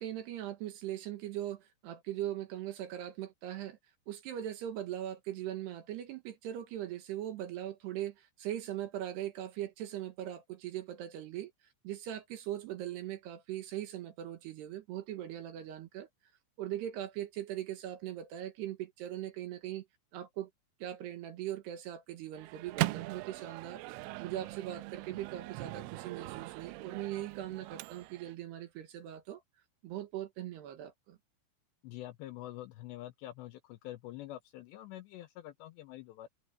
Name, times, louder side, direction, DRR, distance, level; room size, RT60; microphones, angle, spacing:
voice 1, 0.0-3.8 4.1-11.5 11.8-16.1 16.6-19.9 20.1-20.5 20.8-23.8 24.2-29.4 29.8-31.2, right 12 dB, 70° right, 3.0 m, -40 dB
Microwave oven, 22.3-28.3, right 19 dB, 85° right, 3.1 m, -40 dB
voice 2, 31.8-36.3, left 14 dB, 90° left, 2.5 m, -46 dB
omnidirectional pair, 5.8 m